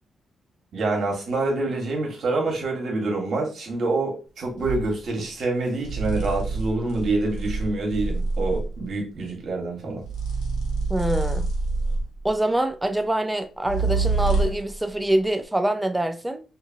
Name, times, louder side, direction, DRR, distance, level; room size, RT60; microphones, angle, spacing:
voice 1, 0.7-10.0, right 2 dB, 60° right, 1.3 m, -26 dB
sound 1, 4.6-4.9 5.8-8.8 10.0-12.3 13.6-14.7, right 3 dB, 85° left, 0.7 m, -26 dB
voice 2, 10.9-11.5 12.2-16.4, right 1 dB, 10° right, 0.4 m, -25 dB
2.7 x 2.6 x 2.6 m
cardioid pair, 90°, 0 cm